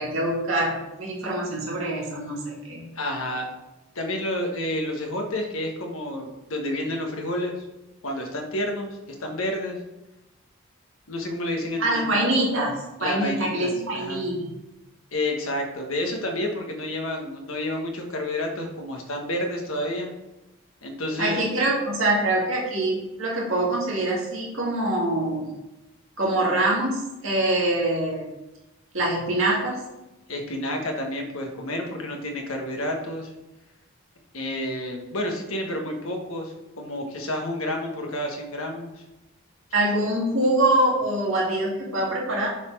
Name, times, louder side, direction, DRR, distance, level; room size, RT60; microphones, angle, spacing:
voice 1, 0.0-2.9 11.8-14.5 21.2-25.5 26.2-28.2 28.9-29.9 39.7-42.5, right 1 dB, 65° right, -4 dB, 2.0 m, -24 dB
voice 2, 2.9-3.5 3.9-7.5 8.0-9.8 11.1-12.2 13.0-14.2 15.1-20.1 20.8-21.4 30.3-33.3 34.3-38.9, left 1 dB, 70° left, 2 dB, 1.2 m, -30 dB
7.1 x 4.1 x 4.7 m, 0.98 s
head